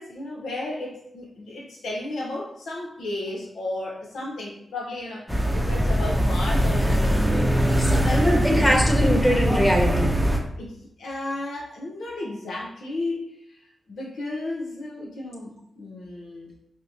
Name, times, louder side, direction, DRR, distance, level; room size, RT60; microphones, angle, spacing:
voice 1, 0.0-7.5 7.9-8.3 10.6-13.4 13.9-16.5, left 2 dB, 85° left, -2 dB, 0.8 m, -33 dB
sound 1, 5.3-10.4, equal, 10° right, 0.7 m, -21 dB
voice 2, 7.8-10.1, equal, 15° left, -1 dB, 1.2 m, -22 dB
5.2 x 2.2 x 2.6 m, 0.71 s
cardioid pair, 50°, 0 cm